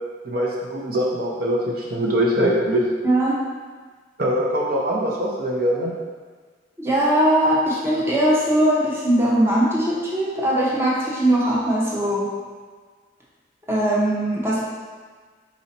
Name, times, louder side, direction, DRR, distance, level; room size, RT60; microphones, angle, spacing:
voice 1, 0.2-2.8 4.2-5.9, equal, 55° right, -3 dB, 0.6 m, -22 dB
voice 2, 3.0-3.4 6.8-12.3 13.7-14.6, right 1 dB, 15° right, -6 dB, 0.8 m, -20 dB
4.1 x 2.7 x 4.2 m, 1.5 s
head